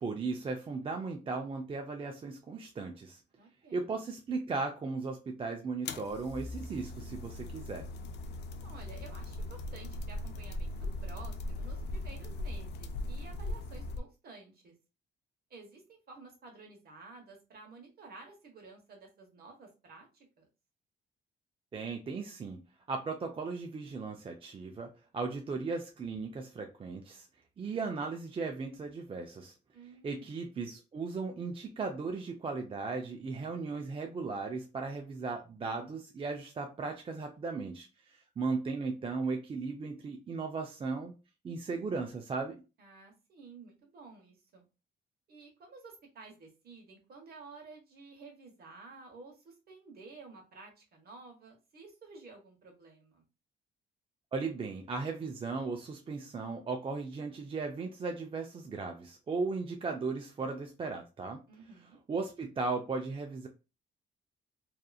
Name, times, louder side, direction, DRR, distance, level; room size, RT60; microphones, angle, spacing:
voice 1, 0.0-3.2 3.7-7.9 21.7-22.6 22.9-27.3 27.6-29.5 30.0-41.1 41.4-42.6 54.3-61.4 62.1-63.5, right 4 dB, 30° right, 3 dB, 0.4 m, -36 dB
voice 2, 3.4-3.9 8.6-14.7 15.5-20.5 29.7-30.3 42.8-44.6 45.3-53.2 61.5-62.0, right 3 dB, 50° right, 2 dB, 1.1 m, -52 dB
sound 1, 5.8-14.0, left 2 dB, 60° left, 0.4 m, -39 dB
2.8 x 2.5 x 2.3 m, 0.30 s
cardioid pair, 100°, 20 cm